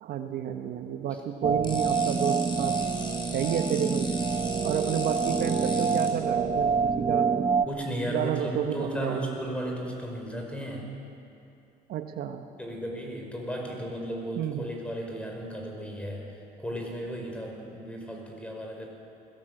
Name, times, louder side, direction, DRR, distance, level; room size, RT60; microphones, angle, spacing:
voice 1, 0.0-2.8 3.3-4.1 4.6-7.5 8.1-9.3 11.9-12.4 14.4-14.7, right 9 dB, 70° right, 6 dB, 1.2 m, -31 dB
sound 1, 1.4-7.7, right 5 dB, 30° right, 1.0 m, -27 dB
sound 2, 1.6-6.1, left 2 dB, 30° left, 4.2 m, -39 dB
voice 2, 7.7-10.9 12.6-18.9, equal, 5° left, 0 dB, 5.0 m, -35 dB
20.0 x 18.0 x 7.8 m, 2.7 s
cardioid pair, 110°, 17 cm